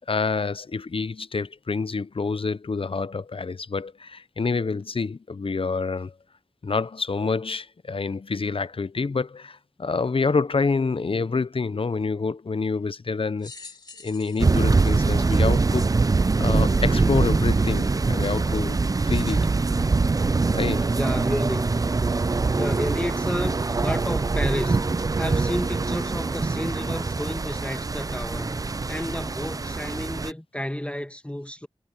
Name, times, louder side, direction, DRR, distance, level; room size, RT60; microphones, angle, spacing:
voice 1, 0.1-6.1 6.6-13.7 14.0-19.5 20.5-20.9, left 4 dB, 65° left, 0.6 m, -27 dB
sound 1, 13.4-16.1 16.8-16.9 18.0-18.1, left 4 dB, 45° left, 2.6 m, -46 dB
sound 2, 14.4-30.3, right 3 dB, 35° right, 0.4 m, -23 dB
voice 2, 20.9-21.9 22.5-31.7, left 1 dB, 10° left, 1.6 m, -31 dB
wide cardioid pair, 50°, 10 cm